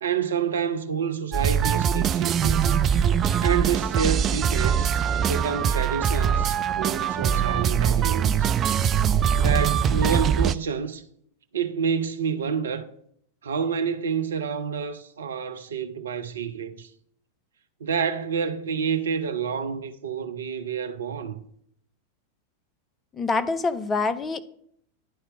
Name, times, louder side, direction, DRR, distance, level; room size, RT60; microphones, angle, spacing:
voice 1, 0.0-2.8 3.4-4.9 5.3-8.5 9.4-11.0 11.5-12.9 13.4-16.9 17.8-21.4, right 7 dB, 65° right, 0.6 m, -28 dB
sound 1, 1.3-10.5, right 8 dB, 30° right, 0.3 m, -22 dB
voice 2, 23.1-24.4, left 3 dB, 20° left, 0.6 m, -25 dB
11.0 x 4.4 x 4.9 m
figure-of-eight pair, 90°, 0 cm